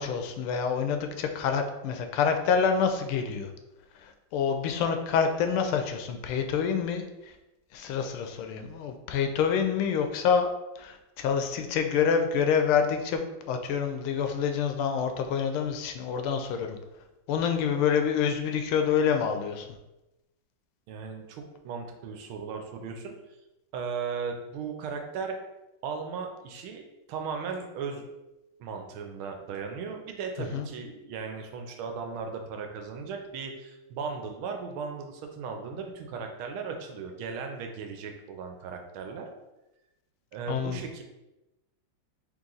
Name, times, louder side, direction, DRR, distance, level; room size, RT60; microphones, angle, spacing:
voice 1, 0.0-3.5 4.0-7.0 7.7-10.5 10.8-13.2 13.5-16.8 17.3-19.7 30.4-30.7 40.5-40.8, left 6 dB, 80° left, 6 dB, 1.4 m, -27 dB
voice 2, 20.9-23.1 23.7-25.4 25.8-26.8 27.1-28.0 28.6-39.3 40.3-41.0, right 5 dB, 80° right, 4 dB, 1.4 m, -36 dB
3.9 x 3.0 x 3.8 m, 0.98 s
omnidirectional pair, 2.4 m